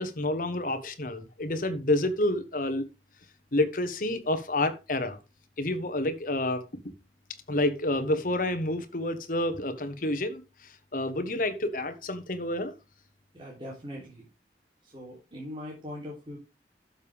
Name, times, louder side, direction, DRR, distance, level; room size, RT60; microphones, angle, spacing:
voice 1, 0.0-2.8 3.5-5.2 5.6-6.7 7.5-10.4 10.9-12.7, left 1 dB, 50° left, 1.3 m, -29 dB
voice 2, 13.3-14.3 14.8-16.4, left 1 dB, 30° right, 3.3 m, -41 dB
12.0 x 6.9 x 3.5 m
head